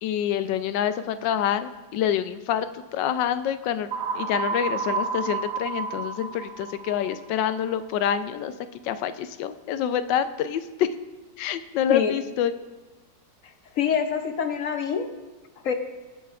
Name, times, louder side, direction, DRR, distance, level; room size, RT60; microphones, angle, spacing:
voice 1, 0.0-3.9 4.2-8.5 8.8-10.9 11.4-12.5, left 9 dB, 85° left, 11 dB, 1.3 m, -26 dB
sound 1, 3.9-7.8, right 5 dB, 75° right, 1.2 m, -31 dB
voice 2, 13.7-15.1 15.6-15.7, left 7 dB, 65° left, 7 dB, 0.9 m, -25 dB
21.0 x 8.5 x 2.4 m, 1.2 s
omnidirectional pair, 1.9 m